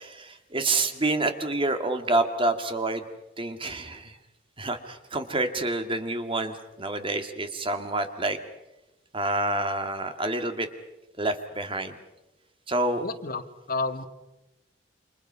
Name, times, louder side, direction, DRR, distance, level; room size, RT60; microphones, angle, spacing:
voice 1, 0.0-3.1 3.4-4.2 4.6-8.4 9.1-10.7 11.2-12.0 12.7-13.0, right 2 dB, 30° right, 7 dB, 2.0 m, -28 dB
voice 2, 13.0-14.1, left 3 dB, 50° left, 9 dB, 1.5 m, -31 dB
29.0 x 26.5 x 5.6 m, 0.96 s
head